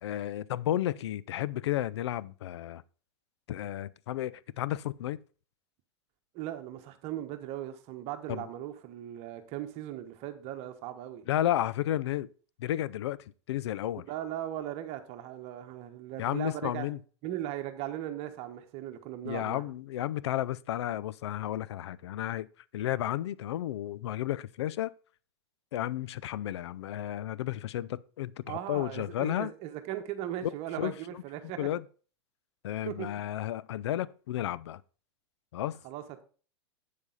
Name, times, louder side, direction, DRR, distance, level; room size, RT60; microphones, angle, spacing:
voice 1, 0.0-2.8 3.5-5.2 8.3-8.4 11.3-12.3 12.6-13.2 13.5-14.0 16.2-17.0 19.2-22.5 22.7-24.9 25.7-29.5 30.4-30.5 30.8-30.9 31.6-31.8 32.6-34.8 35.5-35.8, left 13 dB, 75° left, 0.5 m, -32 dB
voice 2, 6.3-11.3 14.1-16.8 17.2-19.6 28.5-31.7 32.8-33.1 35.8-36.2, right 12 dB, 45° right, 1.2 m, -38 dB
8.4 x 7.2 x 4.0 m
hypercardioid pair, 110°, 14 cm